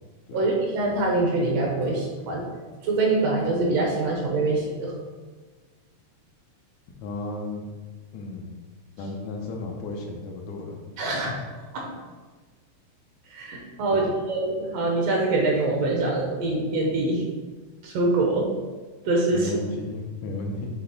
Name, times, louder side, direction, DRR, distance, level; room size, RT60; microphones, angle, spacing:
voice 1, 0.3-2.4 2.8-4.9 11.0-11.3 11.7-11.9 13.3-17.2 17.8-18.5 19.0-19.5, right 2 dB, 70° right, -1 dB, 1.9 m, -24 dB
voice 2, 7.0-7.7 8.1-8.5 9.0-10.8 11.1-11.4 13.9-14.1 19.3-20.7, left 2 dB, 80° left, 1 dB, 2.2 m, -34 dB
7.8 x 3.3 x 4.0 m, 1.4 s
omnidirectional pair, 3.4 m